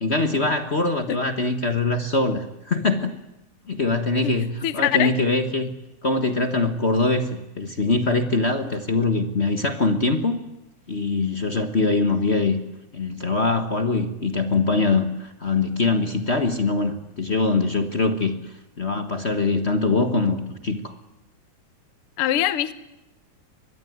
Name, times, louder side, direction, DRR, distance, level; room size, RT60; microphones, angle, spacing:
voice 1, 0.0-3.1 3.7-5.7 6.0-10.4 10.9-12.6 12.9-18.4 18.8-20.9, left 3 dB, 40° left, 9 dB, 0.9 m, -23 dB
voice 2, 4.6-5.1 22.2-22.7, left 12 dB, 60° left, 14 dB, 1.7 m, -22 dB
24.5 x 21.0 x 9.4 m, 0.93 s
omnidirectional pair, 3.4 m